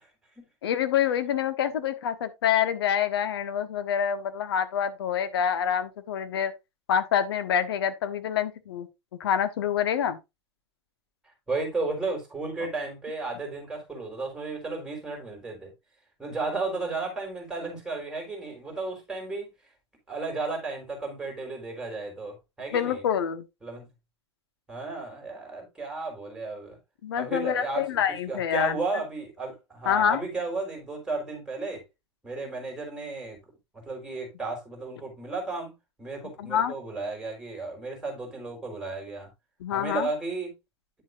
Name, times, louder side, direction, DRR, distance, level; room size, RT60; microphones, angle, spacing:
voice 1, 0.6-6.5 6.9-8.9 9.2-10.2 22.7-23.5 27.0-28.8 29.8-30.2 36.4-36.7 39.6-40.1, left 9 dB, 60° left, 1.2 m, -26 dB
voice 2, 11.5-15.7 16.2-19.5 20.1-23.0 23.6-23.9 24.7-26.8 27.2-28.0 28.3-31.8 32.2-33.4 33.9-35.7 36.0-39.3 39.7-40.5, right 3 dB, 5° right, 4.3 m, -33 dB
9.7 x 7.4 x 2.5 m
figure-of-eight pair, 100°, 15 cm